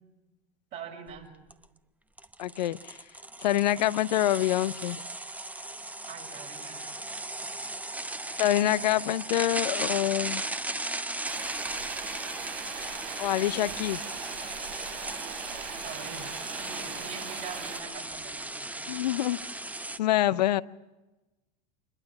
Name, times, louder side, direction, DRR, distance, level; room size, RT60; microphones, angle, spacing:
voice 1, 0.7-1.3 6.0-7.0 7.6-7.7 15.8-18.9, right 6 dB, 55° right, 1 dB, 6.7 m, -44 dB
sound 1, 1.1-1.2 1.5-1.6 2.2-20.0, right 2 dB, 5° right, 0.9 m, -37 dB
voice 2, 2.4-3.0 3.4-5.0 8.4-10.4 13.2-14.0 18.9-19.4 20.0-20.6, left 14 dB, 85° left, 16 dB, 0.7 m, -26 dB
sound 2, 11.2-17.8, right 7 dB, 85° right, 3.9 m, -41 dB
25.5 x 21.5 x 6.0 m, 1.1 s
hypercardioid pair, 95°, 21 cm